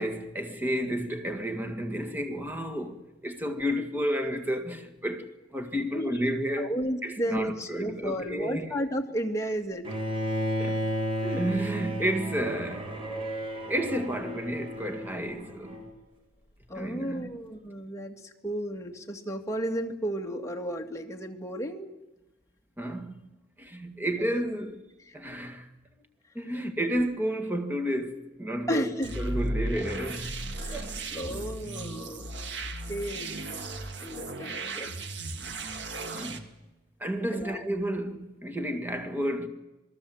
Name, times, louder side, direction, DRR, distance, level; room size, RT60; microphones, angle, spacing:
voice 1, 0.0-5.3 5.5-6.7 7.0-8.7 10.6-10.9 11.2-13.0 13.7-15.8 16.7-17.3 22.8-23.3 23.6-24.8 25.1-25.7 26.4-28.9 29.2-30.4 30.7-30.9 36.1-36.5 37.0-39.5, equal, 10° right, 2.0 m, -31 dB
voice 2, 6.6-9.9 16.7-21.9 24.2-24.4 25.1-25.2 28.7-29.1 30.6-32.4 32.9-33.4 34.0-34.9 37.3-37.6, equal, 15° left, 2.3 m, -33 dB
Bowed string instrument, 9.8-15.9, equal, 30° right, 4.5 m, -33 dB
sound 1, 29.0-36.4, right 2 dB, 65° right, 2.2 m, -35 dB
27.5 x 20.0 x 8.0 m
head